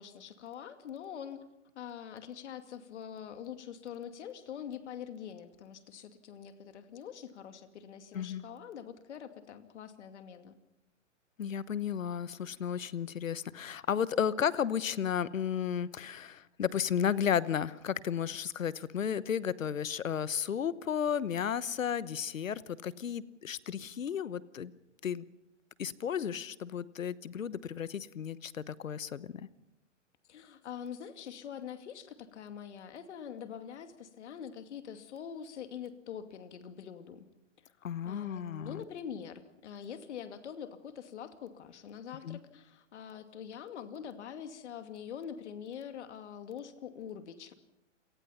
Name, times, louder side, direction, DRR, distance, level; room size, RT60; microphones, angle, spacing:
voice 1, 0.0-1.5 1.8-10.5 30.3-37.3 38.0-47.5, left 8 dB, 60° left, 8 dB, 2.5 m, -44 dB
voice 2, 11.4-24.7 25.0-25.2 25.8-29.5 37.8-38.8 42.2-42.4, left 8 dB, 85° left, 17 dB, 1.1 m, -33 dB
28.5 x 18.5 x 5.8 m, 0.94 s
hypercardioid pair, 140°, 38 cm